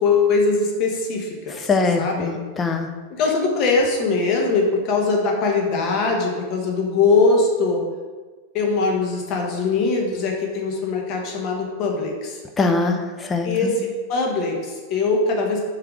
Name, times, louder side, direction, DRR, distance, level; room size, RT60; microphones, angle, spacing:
voice 1, 0.0-1.7 2.0-2.3 3.2-7.8 8.5-12.4 13.4-15.6, left 4 dB, 40° left, 0 dB, 0.9 m, -21 dB
voice 2, 1.7-2.9 12.6-13.0 13.3-13.7, left 3 dB, 20° left, 5 dB, 0.3 m, -21 dB
3.4 x 3.3 x 4.7 m, 1.4 s
figure-of-eight pair, 90°, 0 cm